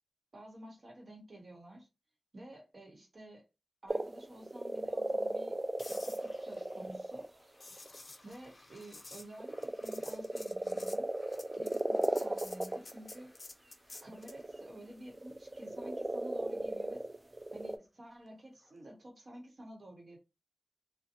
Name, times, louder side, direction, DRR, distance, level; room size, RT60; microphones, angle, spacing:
voice 1, 0.3-1.9 2.3-3.5 3.8-5.6 5.9-7.3 8.2-11.1 11.6-13.3 13.9-17.1 17.5-20.2, right 1 dB, 60° right, 1.0 m, -51 dB
sound 1, 3.9-7.3 7.7-8.0 9.4-13.2 14.1-17.8, right 2 dB, 35° right, 0.3 m, -36 dB
sound 2, 5.8-14.5 18.6-18.9, left 2 dB, 55° left, 0.4 m, -53 dB
2.6 x 2.1 x 2.8 m
wide cardioid pair, 90°, 0 cm